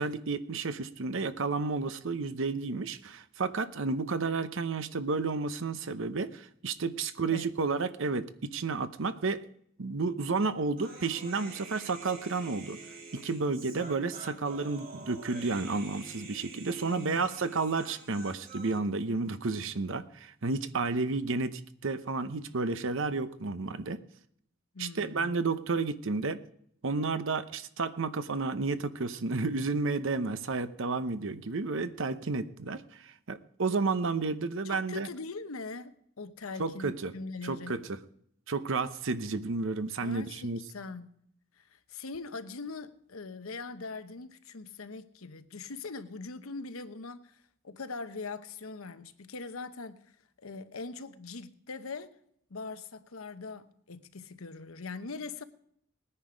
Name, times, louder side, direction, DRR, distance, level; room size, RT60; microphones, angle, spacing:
voice 1, 0.0-9.4 9.8-12.8 13.1-24.0 24.8-26.4 26.8-35.1 36.6-37.1 37.4-38.0 38.5-40.6, right 4 dB, 65° right, 0.8 m, -31 dB
Human voice, 10.8-18.8, right 3 dB, 45° right, 4.2 m, -47 dB
voice 2, 16.7-17.3 24.7-25.4 34.6-37.8 40.0-41.1 41.6-52.2 52.5-55.4, left 4 dB, 80° left, 0.9 m, -42 dB
19.0 x 9.9 x 5.1 m
head